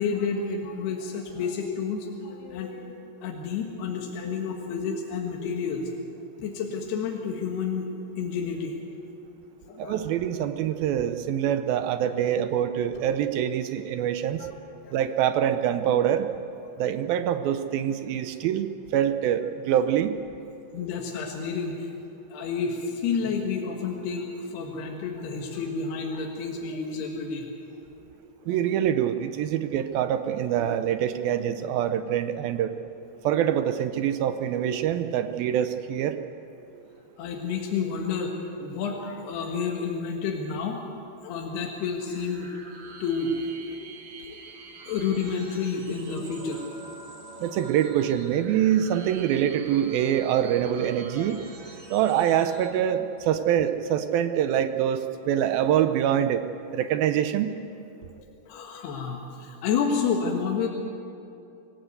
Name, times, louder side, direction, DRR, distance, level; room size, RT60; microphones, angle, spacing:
voice 1, 0.0-3.0 3.2-5.9 6.4-8.7 9.7-10.0 14.4-14.5 14.8-15.0 20.7-21.9 22.3-24.2 24.5-27.5 30.6-30.7 37.2-38.3 38.6-40.8 41.2-42.5 43.0-43.4 43.8-43.9 44.3-44.4 44.9-46.6 51.2-51.3 58.5-60.7, left 5 dB, 85° left, 1 dB, 3.6 m, -30 dB
voice 2, 9.8-14.5 14.9-16.3 16.8-18.7 18.9-20.2 28.5-32.7 33.2-36.2 47.4-51.4 51.9-56.4 56.7-57.5, right 10 dB, 75° right, 9 dB, 2.4 m, -25 dB
sound 1, 42.0-52.7, right 4 dB, 50° right, 3.1 m, -45 dB
25.5 x 16.0 x 8.1 m, 2.7 s
omnidirectional pair, 4.6 m